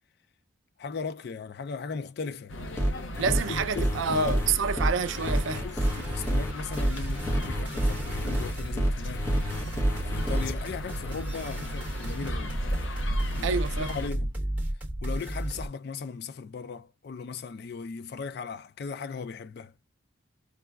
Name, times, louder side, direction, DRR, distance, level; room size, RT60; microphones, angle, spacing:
voice 1, 0.8-2.5 3.3-4.4 5.5-9.3 9.7-12.6 13.3-14.3 15.0-19.7, left 5 dB, 50° left, 0.3 m, -37 dB
sound 1, 2.5-14.1, equal, 70° left, 0.7 m, -35 dB
sound 2, 2.8-10.5, equal, 15° left, 0.7 m, -28 dB
voice 2, 3.2-5.6 13.4-13.9, right 6 dB, 70° right, 0.4 m, -28 dB
sound 3, 5.0-15.7, right 1 dB, 10° right, 1.1 m, -35 dB
4.7 x 2.2 x 2.2 m
head